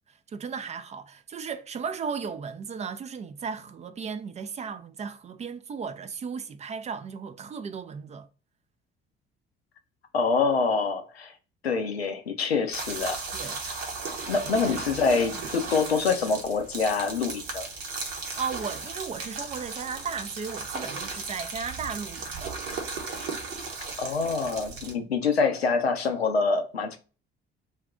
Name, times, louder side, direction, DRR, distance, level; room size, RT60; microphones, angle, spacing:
voice 1, 0.3-8.3 13.3-13.6 14.5-14.8 15.3-15.4 18.1-22.6, right 6 dB, 25° right, 0.4 m, -35 dB
voice 2, 10.1-11.3 11.6-13.2 14.3-17.7 24.0-27.0, left 4 dB, 85° left, 0.5 m, -26 dB
sound 1, 12.7-24.9, right 4 dB, 70° right, 0.9 m, -36 dB
2.6 x 2.3 x 3.6 m
figure-of-eight pair, 50°, 30 cm